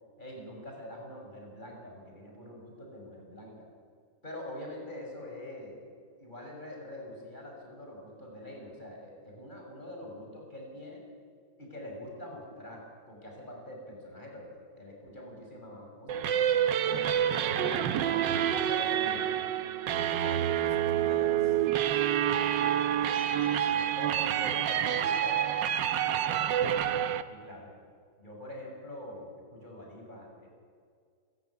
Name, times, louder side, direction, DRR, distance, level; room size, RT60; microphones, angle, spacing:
voice 1, 0.2-3.7 4.2-5.8 6.2-11.1 11.6-17.0 17.3-18.2 18.5-19.6 23.7-25.4 26.0-26.5 27.3-27.7 28.2-30.6, left 1 dB, 25° left, 0 dB, 6.4 m, -45 dB
sound 1, 16.1-27.2, right 10 dB, 70° right, 1.5 m, -28 dB
voice 2, 20.2-21.7 23.8-23.9 24.4-25.1 25.9-26.4, left 4 dB, 75° left, 4 dB, 2.9 m, -47 dB
28.0 x 15.5 x 9.7 m, 2.1 s
omnidirectional pair, 2.1 m